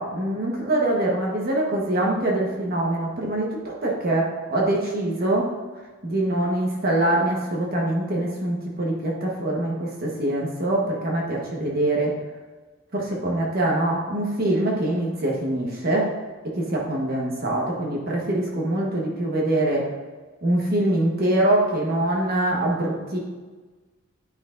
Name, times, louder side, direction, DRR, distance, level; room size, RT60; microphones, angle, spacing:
voice 1, 0.0-5.5 6.0-12.1 12.9-16.1 16.4-19.9 20.4-23.2, right 1 dB, 50° right, -2 dB, 1.2 m, -24 dB
9.1 x 5.8 x 2.5 m, 1.3 s
head